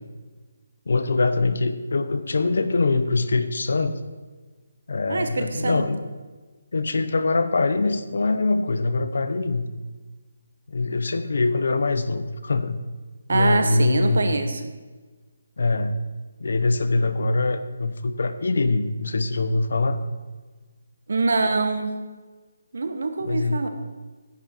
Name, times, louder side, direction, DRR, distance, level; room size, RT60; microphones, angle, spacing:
voice 1, 0.9-4.0 4.9-6.0 6.7-9.7 10.7-12.8 13.3-14.3 15.6-16.0 16.4-20.0 23.2-23.6, left 3 dB, 60° left, 11 dB, 0.8 m, -23 dB
voice 2, 5.1-5.8 13.3-14.7 21.1-21.9 22.7-23.7, right 3 dB, 60° right, 7 dB, 1.3 m, -24 dB
10.5 x 9.5 x 4.4 m, 1.3 s
hypercardioid pair, 175°, 0 cm